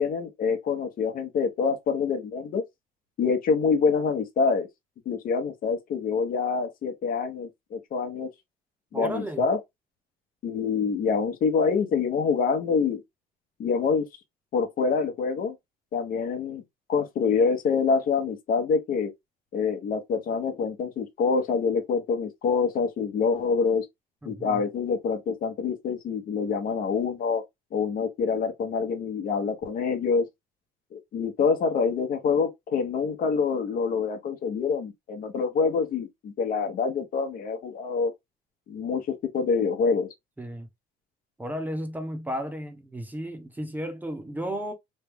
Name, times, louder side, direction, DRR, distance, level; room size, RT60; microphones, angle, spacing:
voice 1, 0.0-2.6 3.2-4.7 5.1-8.3 8.9-9.6 10.4-13.0 13.6-14.1 14.5-15.5 15.9-16.6 16.9-19.1 19.5-23.8 24.2-27.4 27.7-30.3 30.9-38.1 38.7-40.1, left 5 dB, 55° left, 0.9 m, -26 dB
voice 2, 8.9-9.4 24.2-24.6 40.4-40.7 41.4-44.7, equal, 10° right, 0.8 m, -33 dB
3.2 x 2.2 x 3.5 m
cardioid pair, 110°, 17 cm